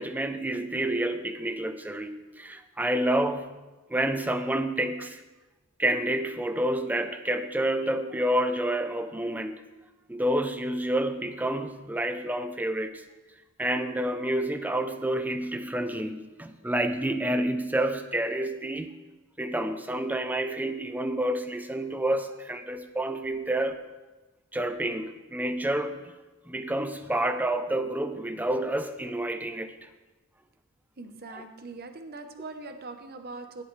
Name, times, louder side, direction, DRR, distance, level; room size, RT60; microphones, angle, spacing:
voice 1, 0.0-3.6 3.9-5.2 5.8-9.6 10.1-13.0 13.6-19.0 19.4-23.8 24.5-26.1 26.5-29.9 31.3-31.4, right 1 dB, 10° right, 9 dB, 0.5 m, -29 dB
voice 2, 31.0-33.6, right 3 dB, 45° right, 7 dB, 0.9 m, -41 dB
17.0 x 7.8 x 3.2 m, 1.2 s
head